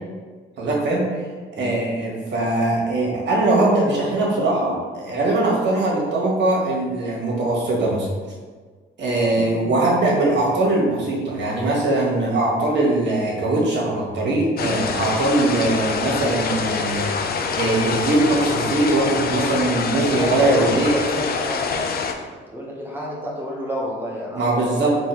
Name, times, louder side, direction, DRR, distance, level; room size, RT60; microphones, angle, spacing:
voice 1, 0.6-1.1 1.6-8.1 9.0-17.3 17.5-21.0 24.3-25.0, right 2 dB, 65° right, -3 dB, 1.3 m, -21 dB
voice 2, 9.3-9.7 14.6-14.8 19.9-21.8 22.5-24.7, equal, 10° right, -5 dB, 0.9 m, -30 dB
sound 1, 14.6-22.1, left 5 dB, 50° left, 0.5 m, -25 dB
3.5 x 3.0 x 4.4 m, 1.5 s
cardioid pair, 90°, 20 cm